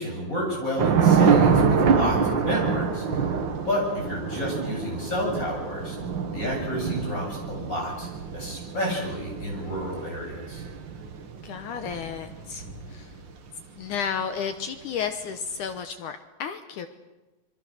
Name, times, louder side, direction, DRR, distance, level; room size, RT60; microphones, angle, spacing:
voice 1, 0.0-3.3 3.7-6.0 6.3-10.6, equal, 20° left, -1 dB, 7.8 m, -30 dB
Thunder / Rain, 0.8-13.3, right 6 dB, 70° right, 1.1 m, -25 dB
voice 2, 11.4-13.1 13.8-16.9, left 7 dB, 70° left, 8 dB, 2.0 m, -32 dB
27.0 x 23.0 x 6.4 m, 1.1 s
omnidirectional pair, 4.5 m